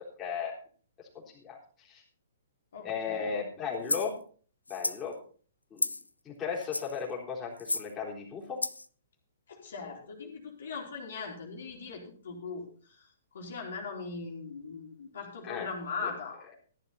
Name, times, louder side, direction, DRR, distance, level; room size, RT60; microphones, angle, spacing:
voice 1, 0.2-0.6 1.1-2.0 2.8-4.1 4.7-5.1 5.7-5.9 6.3-8.6 15.4-15.7 16.0-16.1, left 6 dB, 20° left, -3 dB, 3.7 m, -36 dB
voice 2, 2.7-3.3 9.5-13.0 13.3-16.4, left 4 dB, 60° left, 0 dB, 3.4 m, -40 dB
sound 1, 3.9-4.1 4.7-5.0 5.8-6.1 6.6-7.0 7.6-7.9 8.6-8.9, left 2 dB, 85° left, 0.5 m, -32 dB
14.0 x 11.0 x 4.1 m, 0.43 s
figure-of-eight pair, 120°, 0 cm